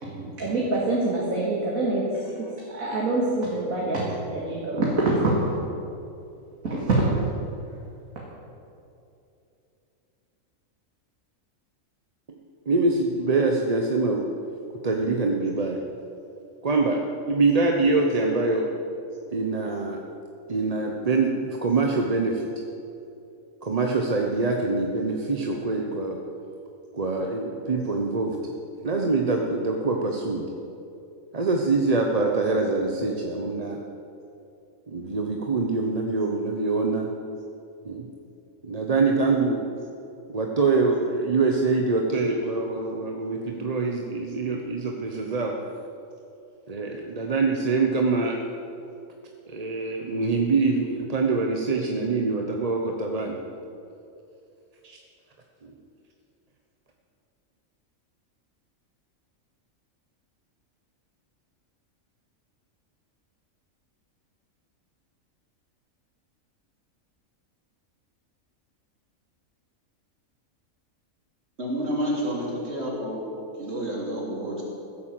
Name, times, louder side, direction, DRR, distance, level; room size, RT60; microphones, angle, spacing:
voice 1, 0.0-4.0 4.3-5.6 6.6-7.0, right 2 dB, 85° right, -5 dB, 2.5 m, -25 dB
voice 2, 12.7-14.3 14.8-15.8 16.6-18.7 19.3-20.0 20.5-22.4 23.6-26.2 26.9-28.4 28.8-30.4 31.3-33.8 34.9-37.1 37.8-38.1 38.6-39.6 40.3-45.6 46.7-48.4 49.5-53.4 54.8-55.0 55.6-55.7, right 3 dB, 30° right, 1 dB, 0.9 m, -24 dB
voice 3, 71.6-73.2 73.6-74.6, equal, 50° right, -4 dB, 3.5 m, -29 dB
15.5 x 8.6 x 7.7 m, 2.7 s
omnidirectional pair, 1.4 m